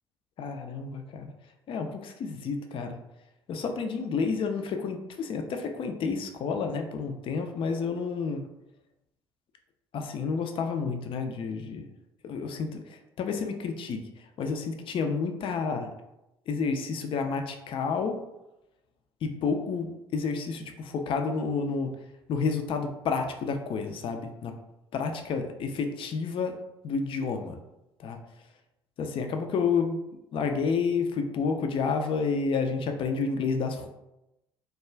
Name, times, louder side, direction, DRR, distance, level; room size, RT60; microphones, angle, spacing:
voice 1, 0.4-1.3 1.7-3.0 3.5-8.4 9.9-11.9 12.2-14.0 14.4-15.9 16.5-18.2 19.2-21.9 22.3-24.5 24.9-26.6 26.8-27.6 28.0-28.2 29.0-30.0 30.3-33.9, left 5 dB, 40° left, 5 dB, 0.4 m, -30 dB
2.3 x 2.3 x 3.1 m, 0.90 s
figure-of-eight pair, 55°, 14 cm